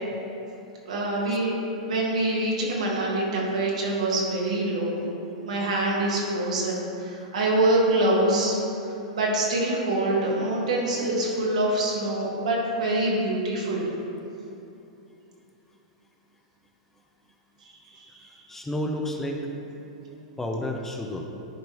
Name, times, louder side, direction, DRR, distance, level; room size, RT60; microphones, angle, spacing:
voice 1, 0.8-1.5 1.8-5.0 5.4-8.6 9.1-13.9 18.0-18.2, right 1 dB, 85° right, -3 dB, 1.6 m, -25 dB
voice 2, 18.5-19.5 20.4-21.3, left 1 dB, 10° left, 2 dB, 0.6 m, -31 dB
10.5 x 4.4 x 3.1 m, 2.8 s
hypercardioid pair, 115°, 4 cm